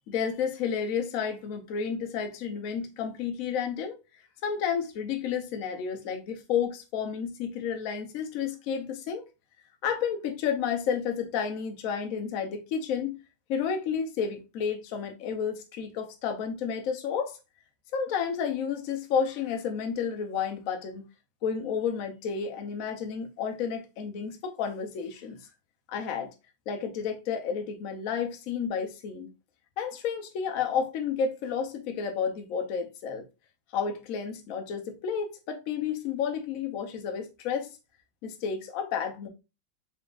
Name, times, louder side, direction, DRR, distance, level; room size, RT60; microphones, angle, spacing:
voice 1, 0.1-4.0 4.4-9.2 9.8-13.2 13.5-17.4 17.9-21.1 21.4-25.5 25.9-26.3 26.7-29.3 29.8-33.3 33.7-37.7 38.2-39.3, left 7 dB, 65° left, 0.8 m, -31 dB
4.1 x 3.7 x 2.4 m
omnidirectional pair, 2.2 m